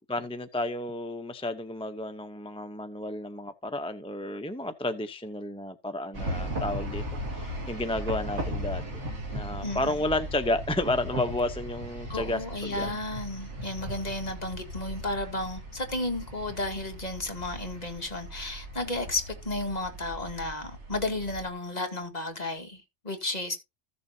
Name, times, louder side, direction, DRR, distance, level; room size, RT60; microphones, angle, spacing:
voice 1, 0.0-7.0 7.3-8.8 9.3-12.9, left 1 dB, 5° left, 0.6 m, -32 dB
sound 1, 6.1-21.5, equal, 70° right, 2.6 m, -37 dB
voice 2, 9.6-10.0 12.1-23.6, left 2 dB, 35° left, 2.1 m, -33 dB
15.0 x 7.0 x 2.7 m
omnidirectional pair, 1.2 m